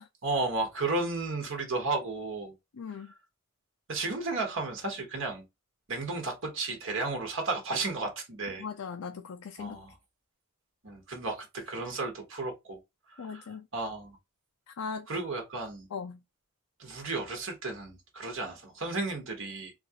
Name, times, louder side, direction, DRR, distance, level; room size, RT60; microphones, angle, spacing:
voice 1, 0.2-2.5 3.9-5.4 5.9-8.6 9.6-9.9 10.8-12.8 13.2-14.2 15.1-15.9 16.8-19.7, right 3 dB, 60° right, 1.1 m, -33 dB
voice 2, 2.7-3.1 8.6-9.8 13.2-13.7 14.7-15.1 15.9-16.2, left 5 dB, 75° left, 0.4 m, -39 dB
4.1 x 2.4 x 2.7 m
head